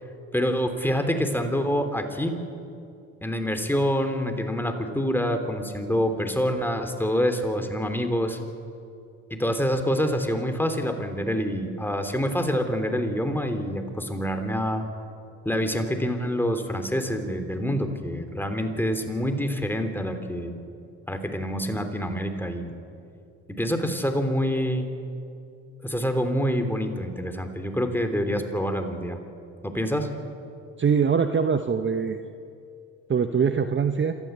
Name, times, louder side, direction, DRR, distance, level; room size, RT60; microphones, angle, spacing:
voice 1, 0.3-2.3 3.2-8.4 9.3-14.8 15.4-20.6 21.1-22.7 23.5-24.8 25.8-29.2 29.6-30.1, equal, 5° left, 6 dB, 3.3 m, -26 dB
voice 2, 30.8-32.2 33.1-34.1, right 6 dB, 35° right, 8 dB, 1.1 m, -23 dB
27.0 x 14.0 x 8.2 m, 2.5 s
supercardioid pair, 65°, 35 cm